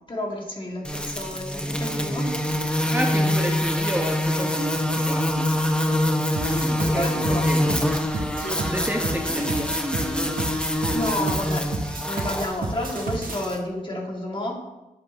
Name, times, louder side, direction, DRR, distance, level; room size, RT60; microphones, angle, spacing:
voice 1, 0.1-2.4 6.8-7.5 10.9-14.5, left 1 dB, 35° left, -1 dB, 2.4 m, -31 dB
sound 1, 0.8-13.6, left 1 dB, 5° left, 1.2 m, -25 dB
voice 2, 2.9-6.0 6.4-10.4, equal, 10° right, 1 dB, 1.1 m, -31 dB
sound 2, 6.4-13.4, right 3 dB, 75° right, 1.4 m, -31 dB
10.5 x 7.9 x 3.1 m, 1.0 s
cardioid pair, 55°, 15 cm